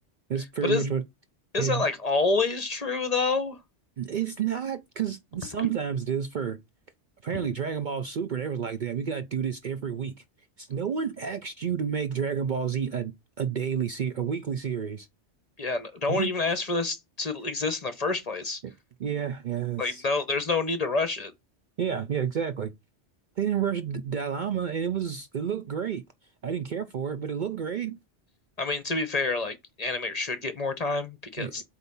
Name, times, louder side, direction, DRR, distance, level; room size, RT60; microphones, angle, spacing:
voice 1, 0.3-1.0 1.6-1.8 4.0-6.6 7.2-10.1 10.6-13.1 13.4-15.1 16.1-16.3 18.6-18.7 19.0-20.0 21.8-22.7 23.4-26.0 26.4-28.0 31.4-31.5, right 7 dB, 55° right, 0.6 m, -30 dB
voice 2, 1.5-3.6 15.6-18.6 19.8-21.3 28.6-31.6, left 3 dB, 35° left, 0.9 m, -28 dB
8.0 x 2.7 x 5.4 m
omnidirectional pair, 1.2 m